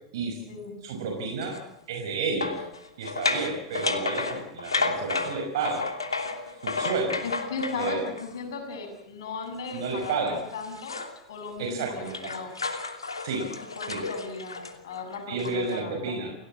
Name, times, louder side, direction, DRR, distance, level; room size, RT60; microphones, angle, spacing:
voice 1, 0.8-1.6 1.9-2.6 3.0-5.8 6.6-7.2 7.7-8.0 9.7-10.4 11.6-12.3 13.2-13.5 13.9-14.0 15.3-16.3, right 4 dB, 60° right, 3 dB, 5.5 m, -31 dB
sound 1, 1.4-1.6 2.4-8.4 9.6-11.2 11.6-15.8, left 3 dB, 80° left, 2.9 m, -32 dB
voice 2, 7.2-11.0 11.3-12.5 13.6-16.2, left 4 dB, 60° left, 5 dB, 7.5 m, -37 dB
29.0 x 18.0 x 7.5 m, 0.81 s
figure-of-eight pair, 90°, 3 cm